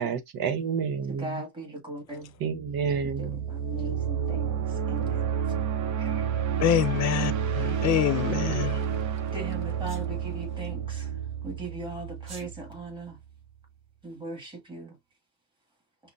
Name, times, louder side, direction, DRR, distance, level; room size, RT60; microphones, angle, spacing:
voice 1, 0.0-1.3 2.4-3.4, right 6 dB, 75° right, 1.0 m, -29 dB
voice 2, 1.1-2.3 2.8-5.3 6.0-6.3 9.3-13.2 14.0-15.0, right 2 dB, 15° right, 1.8 m, -39 dB
sound 1, 2.5-13.3, right 8 dB, 55° right, 0.8 m, -30 dB
voice 3, 6.6-8.8, left 12 dB, 50° left, 0.5 m, -26 dB
Sneeze, 9.9-10.1 12.2-12.5, right 4 dB, 35° right, 1.6 m, -45 dB
5.8 x 2.1 x 2.6 m
cardioid pair, 170°, 36 cm